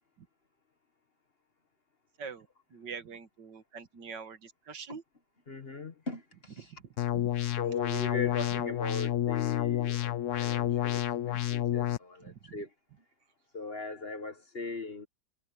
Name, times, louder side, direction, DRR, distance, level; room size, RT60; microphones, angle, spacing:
voice 1, 2.2-5.0 6.6-7.3 12.2-12.6, right 6 dB, 70° right, 2.1 m, -45 dB
voice 2, 5.5-6.6 7.6-12.7 13.5-15.1, left 4 dB, 35° left, 1.5 m, -39 dB
sound 1, 7.0-12.0, left 12 dB, 60° left, 0.8 m, -30 dB
omnidirectional pair, 2.0 m